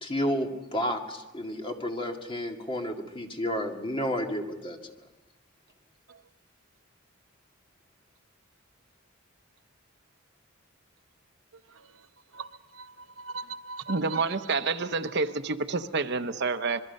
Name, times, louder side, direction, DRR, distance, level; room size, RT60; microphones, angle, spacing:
voice 1, 0.0-4.8, equal, 25° left, 2.0 m, -31 dB
voice 2, 11.5-15.2, right 4 dB, 85° right, 0.9 m, -42 dB
voice 3, 13.9-16.8, right 4 dB, 55° right, 0.9 m, -28 dB
26.5 x 22.0 x 5.4 m
head